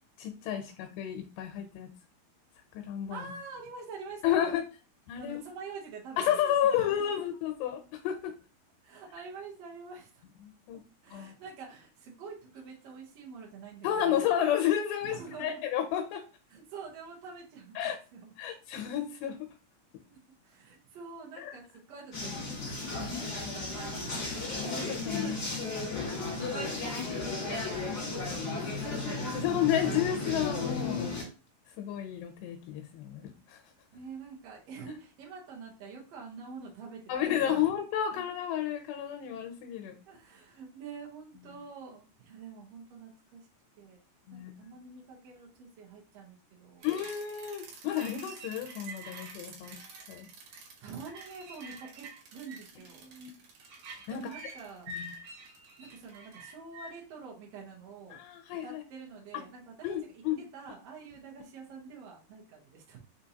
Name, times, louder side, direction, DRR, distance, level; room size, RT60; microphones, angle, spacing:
voice 1, 0.2-1.9 2.7-3.3 4.2-4.6 5.1-5.4 6.2-8.3 10.4-10.8 11.1-11.3 13.8-16.2 17.8-18.0 18.4-19.4 21.4-21.5 24.5-25.5 25.8-25.9 29.3-31.1 31.8-33.6 37.1-40.0 44.3-44.5 46.8-49.8 50.1-50.3 52.9-53.3 53.9-54.3 54.9-55.0 58.1-58.8 59.8-60.4, left 10 dB, 90° left, 4 dB, 2.8 m, -31 dB
voice 2, 3.1-4.5 5.2-6.4 6.7-7.1 8.8-10.3 11.0-14.3 15.0-15.6 16.5-17.8 18.1-18.3 20.1-20.2 20.4-24.2 26.2-29.5 29.8-29.9 33.9-37.7 38.1-38.2 40.1-43.4 43.8-44.0 44.3-46.9 50.8-53.1 54.1-54.9 55.8-58.2 58.6-59.9 60.1-63.0, right 5 dB, 85° right, -2 dB, 1.4 m, -46 dB
sound 1, 22.1-31.2, left 3 dB, 65° left, 0.9 m, -34 dB
sound 2, 46.8-56.9, right 2 dB, 65° right, 2.0 m, -47 dB
6.3 x 2.8 x 2.8 m, 0.33 s
omnidirectional pair, 4.7 m